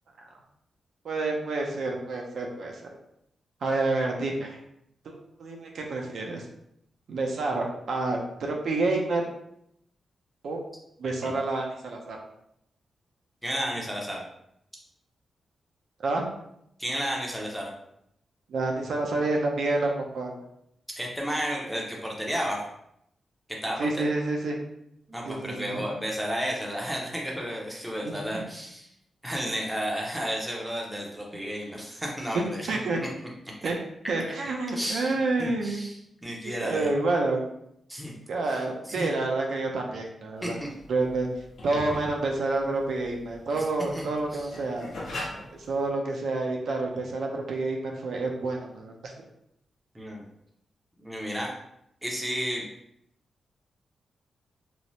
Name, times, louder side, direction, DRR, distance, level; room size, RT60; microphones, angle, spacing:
voice 1, 1.0-2.9 3.6-4.6 5.1-6.4 7.1-9.3 10.4-10.6 11.0-12.2 16.0-16.2 18.5-20.4 23.8-24.6 25.3-25.8 28.0-28.4 32.3-33.0 33.6-33.7 34.1-35.8 36.6-37.4 38.3-40.6 40.9-41.3 41.6-44.9 45.5-49.1, right 2 dB, 70° right, 1 dB, 0.4 m, -28 dB
voice 2, 13.4-14.2 16.8-17.7 21.0-22.6 23.6-23.9 25.1-28.9 29.2-32.7 33.0-33.1 33.6-33.7 34.8-36.9 37.9-38.1 38.5-38.6 38.9-39.1 40.4-40.7 43.5-43.7 43.9-44.5 49.9-50.2 51.0-51.5 52.0-52.6, equal, 5° right, -2 dB, 0.5 m, -32 dB
sound 1, 40.4-45.9, left 1 dB, 65° left, 0.6 m, -40 dB
3.0 x 2.0 x 2.6 m, 0.76 s
wide cardioid pair, 160°, 0 cm